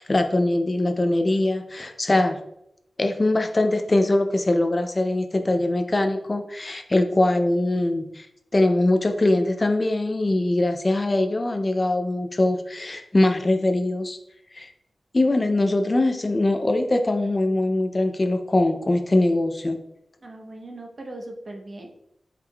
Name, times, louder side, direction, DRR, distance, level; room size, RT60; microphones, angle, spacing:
voice 1, 0.0-2.4 3.0-8.3 8.5-14.2 14.5-14.7 15.1-19.8, left 2 dB, 35° left, 6 dB, 0.4 m, -22 dB
voice 2, 20.2-21.9, right 1 dB, 45° right, 2 dB, 0.7 m, -39 dB
4.8 x 3.6 x 2.2 m, 0.78 s
wide cardioid pair, 85°, 0 cm